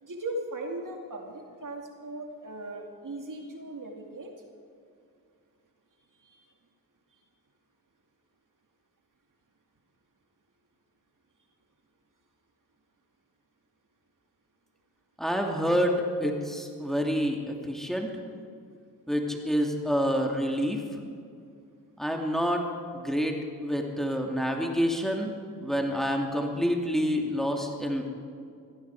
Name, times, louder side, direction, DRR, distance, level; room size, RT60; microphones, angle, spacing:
voice 1, 0.0-4.4 6.2-6.5, right 1 dB, 55° right, 2 dB, 2.5 m, -38 dB
voice 2, 15.2-18.1 19.1-20.8 22.0-22.6 22.9-23.4 23.6-25.3 25.6-28.0, equal, ahead, 1 dB, 2.6 m, -27 dB
18.5 x 14.5 x 4.9 m, 2.4 s
supercardioid pair, 40°, 38 cm